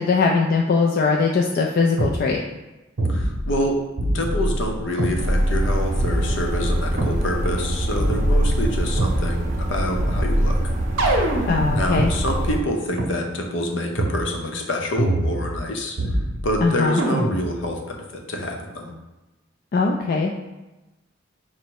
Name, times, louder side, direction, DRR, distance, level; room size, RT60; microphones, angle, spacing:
voice 1, 0.0-2.4 11.5-12.1 16.6-17.0 19.7-20.3, left 4 dB, 50° left, 0 dB, 0.3 m, -20 dB
sound 1, 2.0-2.2 3.0-3.6 4.0-5.2 6.0-7.2 8.0-9.2 10.0-12.1 13.0-13.1 14.0-14.2 15.0-15.7 16.0-16.6 17.0-17.6, right 1 dB, 80° right, 0.7 m, -24 dB
voice 2, 3.1-3.8 4.1-10.6 11.2-18.9, left 1 dB, 70° left, 2 dB, 0.7 m, -27 dB
sound 2, 5.2-12.6, right 1 dB, 40° right, 0.4 m, -25 dB
5.1 x 2.1 x 4.6 m, 1.1 s
head